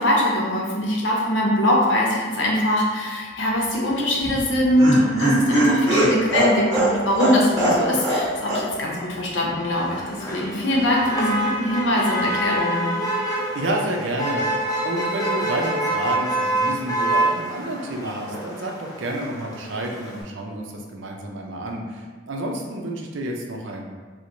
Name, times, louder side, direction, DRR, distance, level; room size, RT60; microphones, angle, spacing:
voice 1, 0.0-12.9, left 1 dB, 70° left, -2 dB, 0.7 m, -22 dB
Laughter, 4.2-8.2 8.5-8.6 8.9-9.0, right 1 dB, 20° right, 1.2 m, -20 dB
Motor vehicle (road), 9.7-20.2, right 1 dB, 20° left, 0.6 m, -26 dB
voice 2, 13.5-14.4 14.8-23.8, right 1 dB, 80° right, 1 dB, 0.5 m, -29 dB
4.4 x 2.1 x 2.6 m, 1.4 s
head